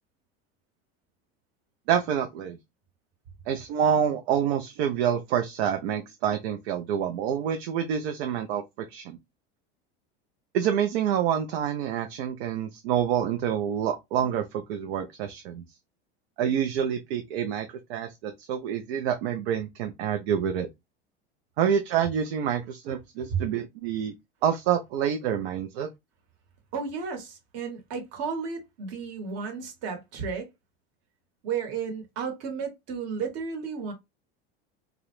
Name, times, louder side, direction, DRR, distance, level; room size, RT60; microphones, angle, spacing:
voice 1, 1.9-2.6 3.5-8.6 8.9-9.2 10.5-15.6 16.4-20.7 21.6-24.1 24.4-25.9, right 9 dB, 75° right, 0.5 m, -27 dB
voice 2, 26.7-30.5 31.4-33.9, right 6 dB, 50° right, 1.1 m, -33 dB
2.4 x 2.0 x 2.9 m
supercardioid pair, 115°, 31 cm